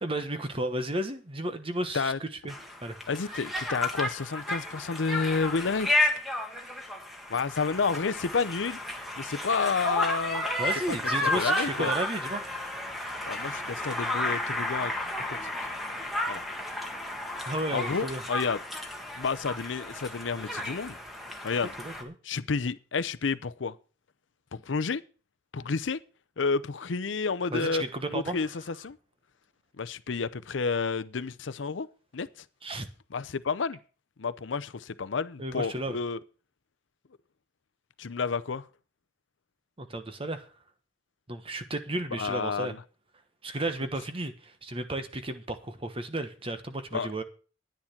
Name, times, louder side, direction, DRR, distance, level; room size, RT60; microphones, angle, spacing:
voice 1, 0.0-2.5 2.8-3.0 3.3-3.4 10.6-12.6 17.4-18.2 21.8-22.1 27.5-28.5 32.6-32.9 35.4-36.0 39.8-40.5 41.3-42.7 43.4-47.2, right 1 dB, 30° right, 1.2 m, -33 dB
Conversation, 2.5-22.0, left 1 dB, ahead, 1.7 m, -32 dB
voice 2, 3.1-6.1 7.3-8.8 9.2-10.5 10.9-11.0 11.2-11.9 13.3-14.9 16.3-16.4 17.7-18.6 19.2-21.0 21.4-21.7 22.2-23.7 24.5-25.0 25.5-26.0 26.4-27.8 28.1-29.0 29.8-31.9 32.1-32.3 33.1-33.8 34.2-36.2 38.0-38.6 42.1-42.8 46.9-47.1, left 4 dB, 85° left, 0.6 m, -30 dB
10.5 x 9.8 x 5.8 m
head